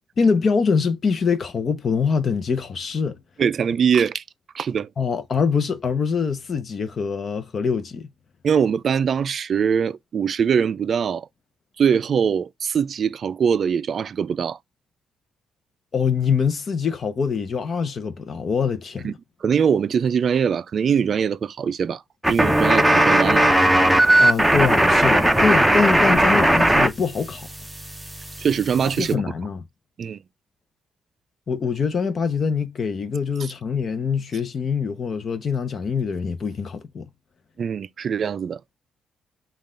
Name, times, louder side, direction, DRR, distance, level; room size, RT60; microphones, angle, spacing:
voice 1, 0.2-3.2 5.0-8.1 15.9-19.1 24.2-27.5 29.0-29.6 31.5-37.0, left 5 dB, 45° left, 0.6 m, -24 dB
voice 2, 3.4-4.2 4.5-4.9 8.4-11.3 11.8-14.6 19.0-19.1 19.4-23.5 28.4-29.2 30.0-30.2 37.6-38.6, right 7 dB, 50° right, 0.3 m, -22 dB
sound 1, 22.2-26.9 27.1-29.1, right 1 dB, 5° right, 0.7 m, -18 dB
5.4 x 2.3 x 3.7 m
cardioid pair, 90°, 0 cm